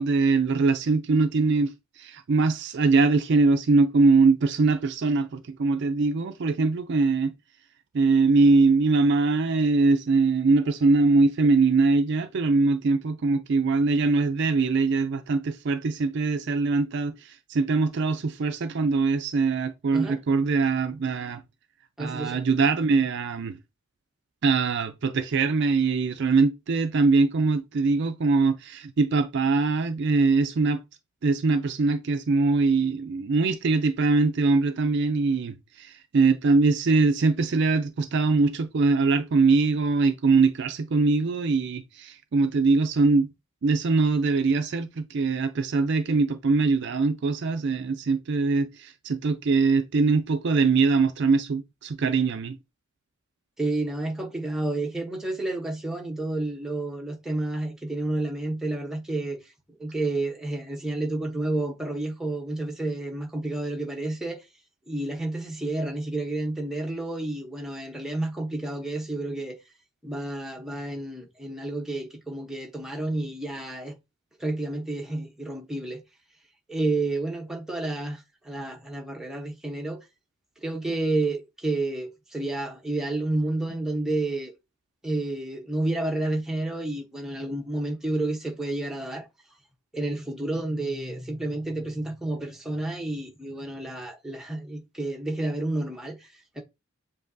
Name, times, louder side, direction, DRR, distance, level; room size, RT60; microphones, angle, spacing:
voice 1, 0.0-7.3 7.9-21.4 22.0-23.6 24.4-30.8 31.2-43.3 43.6-52.6, right 3 dB, 50° right, 0.4 m, -22 dB
voice 2, 22.0-22.4 53.6-59.5 59.8-64.4 64.9-69.6 70.0-74.0 74.4-76.0 76.7-80.0 80.6-84.5 85.0-89.3 89.9-96.6, right 2 dB, ahead, 0.8 m, -30 dB
7.3 x 2.7 x 2.6 m
head